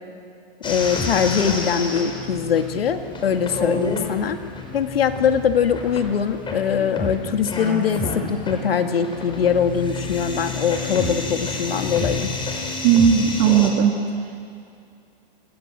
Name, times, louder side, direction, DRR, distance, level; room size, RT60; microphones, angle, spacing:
voice 1, 0.6-4.4 4.7-12.3, left 7 dB, 85° left, 6 dB, 2.3 m, -22 dB
sound 1, 0.6-13.7, left 3 dB, 15° left, 5.2 m, -30 dB
voice 2, 12.8-13.9, right 8 dB, 45° right, 2 dB, 2.6 m, -16 dB
28.0 x 26.5 x 7.7 m, 2.4 s
hypercardioid pair, 130°, 29 cm